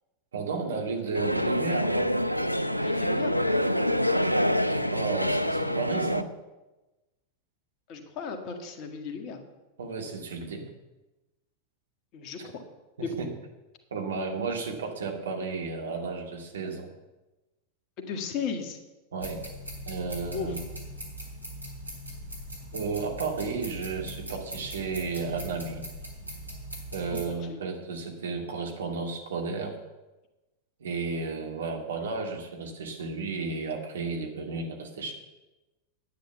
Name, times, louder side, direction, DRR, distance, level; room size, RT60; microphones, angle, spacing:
voice 1, 0.3-2.2 4.7-6.3 9.8-10.7 13.0-13.3 13.9-16.9 19.1-19.4 19.8-20.6 22.7-25.8 26.9-29.8 30.8-35.1, right 4 dB, 65° right, 2 dB, 2.2 m, -33 dB
sound 1, 1.1-6.2, equal, 90° left, 0.5 m, -26 dB
voice 2, 2.8-3.3 7.9-9.4 12.1-12.6 13.0-13.2 18.0-18.8 20.3-20.6 27.3-27.6, left 6 dB, 40° left, 5 dB, 1.8 m, -35 dB
sound 2, 19.2-27.3, equal, 85° right, 3.1 m, -40 dB
10.5 x 9.4 x 7.0 m, 1.1 s
figure-of-eight pair, 90°, 0 cm